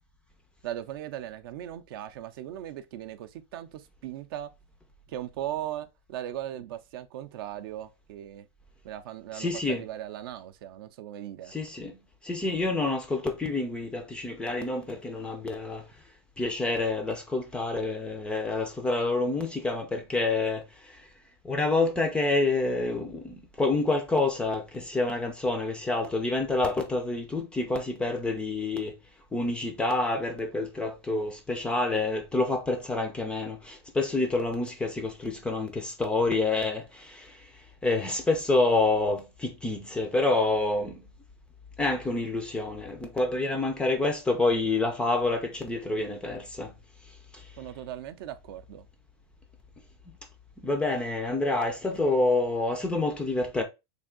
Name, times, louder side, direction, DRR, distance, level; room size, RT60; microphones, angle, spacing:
voice 1, 0.6-4.5 5.1-8.5 8.8-11.5 47.6-48.9, right 12 dB, 55° right, 0.5 m, -38 dB
voice 2, 9.3-9.8 11.5-15.9 16.4-21.1 21.4-29.0 29.3-41.1 41.8-46.8 47.3-47.5 50.6-53.6, left 2 dB, 5° left, 0.4 m, -28 dB
3.4 x 2.6 x 3.6 m
supercardioid pair, 160°, 14 cm